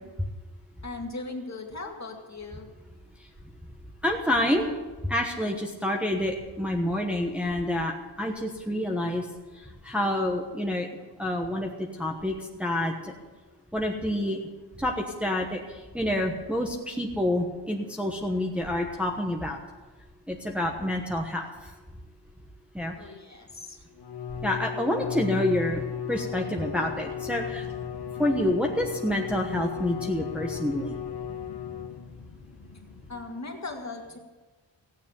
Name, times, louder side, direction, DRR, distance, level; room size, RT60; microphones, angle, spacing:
voice 1, 0.8-2.7 23.0-23.8 33.1-34.2, left 3 dB, 35° left, 2 dB, 2.2 m, -38 dB
voice 2, 4.0-4.7 5.0-9.3 9.5-10.9 11.2-13.1 13.7-14.4 14.8-19.6 20.3-21.7 22.7-23.1 24.4-25.8 26.1-27.7 28.2-31.0, left 1 dB, 5° right, 0 dB, 1.2 m, -28 dB
Bowed string instrument, 24.0-32.3, left 8 dB, 55° left, 1.3 m, -35 dB
sound 1, 26.3-33.2, left 5 dB, 90° left, 1.7 m, -46 dB
15.5 x 9.4 x 7.1 m, 1.2 s
wide cardioid pair, 140°, 46 cm